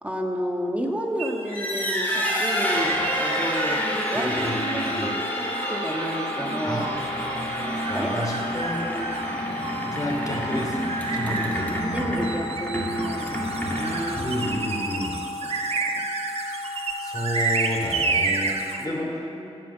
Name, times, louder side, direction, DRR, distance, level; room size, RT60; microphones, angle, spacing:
voice 1, 0.0-4.3 4.7-6.9 7.9-8.1 8.9-9.1 11.2-11.4 11.9-14.4 15.9-16.1 18.8-19.6, equal, 10° right, 1 dB, 1.5 m, -31 dB
sound 1, 1.2-18.9, right 4 dB, 65° right, 1.2 m, -32 dB
sound 2, 1.4-14.8, equal, 15° left, 2.3 m, -29 dB
sound 3, 2.6-18.2, left 2 dB, 75° left, 1.1 m, -35 dB
voice 2, 4.1-5.1 6.6-8.8 9.8-10.8 11.1-11.7 14.2-15.2 17.0-19.3, equal, 35° left, -1 dB, 2.7 m, -31 dB
16.5 x 5.9 x 8.2 m, 3.0 s
wide cardioid pair, 100°, 11 cm